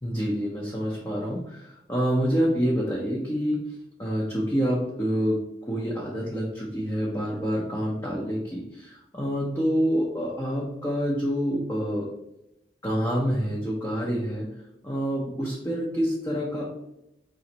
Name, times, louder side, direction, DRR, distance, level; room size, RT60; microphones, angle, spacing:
voice 1, 0.0-3.7 4.0-12.1 12.8-14.5 14.8-16.7, equal, 15° left, -4 dB, 0.7 m, -27 dB
5.0 x 3.1 x 2.9 m, 0.85 s
head